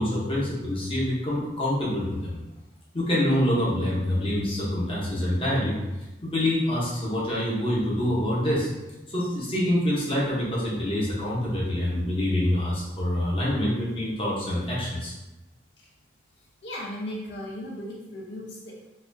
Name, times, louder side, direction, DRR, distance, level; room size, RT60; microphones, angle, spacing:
voice 1, 0.0-2.4 2.9-5.8 6.2-8.7 9.1-15.1, left 1 dB, 30° left, -6 dB, 0.8 m, -26 dB
voice 2, 16.6-18.8, left 1 dB, 65° left, -4 dB, 0.6 m, -36 dB
4.1 x 2.4 x 2.6 m, 1.0 s
head